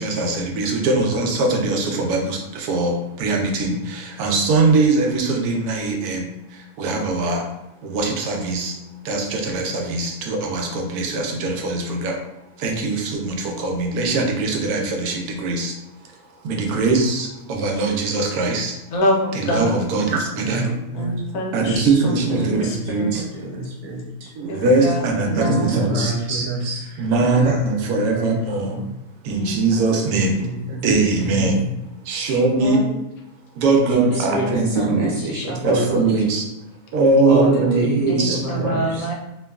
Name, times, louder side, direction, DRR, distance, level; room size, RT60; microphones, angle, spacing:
voice 1, 0.0-7.5 7.8-8.8 9.0-12.2 12.6-15.8 16.4-18.8 19.3-20.7 21.5-23.4 24.4-26.1 27.0-28.8 29.2-30.5 30.8-31.6 32.0-32.8 33.6-35.1 35.6-36.5 36.9-38.9, right 3 dB, 85° right, 2 dB, 1.1 m, -21 dB
voice 2, 18.9-19.8 20.9-21.8 22.3-22.6 22.9-23.1 24.5-25.7 29.3-29.5 32.6-32.9 34.1-35.8 38.1-39.1, equal, 75° left, 0 dB, 1.0 m, -26 dB
voice 3, 20.3-21.2 21.5-21.8 22.1-22.2 22.6-24.3 25.4-28.4 28.7-28.8 30.1-31.6 32.2-32.4 33.9-36.0 37.3-39.1, right 2 dB, 60° right, -4 dB, 1.0 m, -27 dB
2.9 x 2.3 x 2.2 m, 0.92 s
omnidirectional pair, 1.6 m